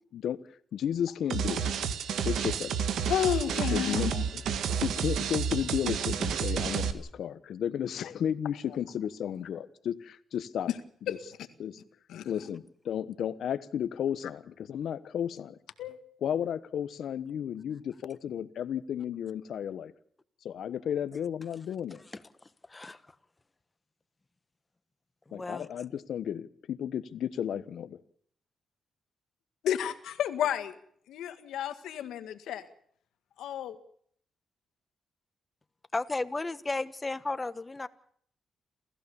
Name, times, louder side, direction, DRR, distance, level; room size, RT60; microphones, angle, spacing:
voice 1, 0.7-1.6 2.2-2.8 3.7-4.4 4.8-10.7 11.1-11.2 11.6-11.8 12.2-15.6 16.2-19.9 20.4-22.0 25.3-28.0, left 9 dB, 75° left, 1.2 m, -33 dB
sound 1, 1.3-6.9, right 7 dB, 80° right, 1.7 m, -30 dB
voice 2, 3.1-4.2 10.7-10.8 12.1-12.3 15.8-16.0 29.6-29.9 30.2-30.6 31.1-32.7 33.4-33.8, left 10 dB, 90° left, 1.8 m, -31 dB
voice 3, 21.9-23.0 25.3-25.7 35.9-37.9, left 2 dB, 20° left, 1.3 m, -35 dB
29.0 x 15.0 x 7.1 m
cardioid pair, 90°, 0 cm